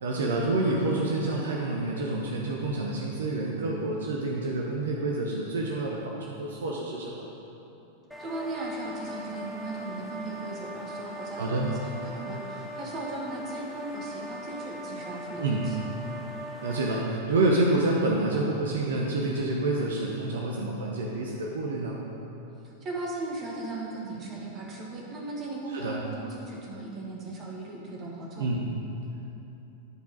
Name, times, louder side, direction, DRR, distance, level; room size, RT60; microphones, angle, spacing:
voice 1, 0.0-7.2 11.3-11.7 15.4-15.7 16.6-22.0 25.7-26.0 28.4-28.6, right 2 dB, 65° right, -2 dB, 0.8 m, -28 dB
sound 1, 8.1-17.0, equal, ahead, 1.3 m, -40 dB
voice 2, 8.2-15.9 22.6-28.5, right 2 dB, 30° right, -1 dB, 1.5 m, -37 dB
10.0 x 4.7 x 5.2 m, 2.9 s
figure-of-eight pair, 90°, 0 cm